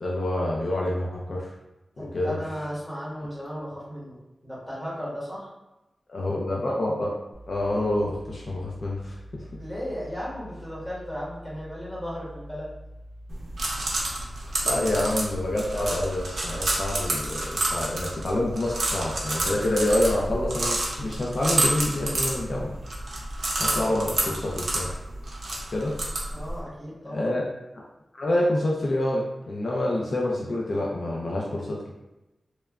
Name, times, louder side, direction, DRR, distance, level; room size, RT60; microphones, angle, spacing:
voice 1, 0.0-1.5 2.0-2.4 6.1-7.2 7.5-9.4 14.6-22.7 23.6-24.9 25.7-25.9 27.0-27.4 27.7-27.8 28.1-31.9, left 1 dB, 55° left, -3 dB, 0.4 m, -27 dB
voice 2, 1.9-4.2 4.4-5.5 9.6-12.7 13.7-13.9 23.5-23.9 26.3-27.2, equal, 10° left, -8 dB, 1.0 m, -35 dB
sound 1, 7.3-24.2, equal, 90° left, 0.7 m, -45 dB
sound 2, 13.3-26.6, right 2 dB, 60° right, 0.6 m, -29 dB
2.9 x 2.2 x 2.3 m, 0.98 s
wide cardioid pair, 110°, 0 cm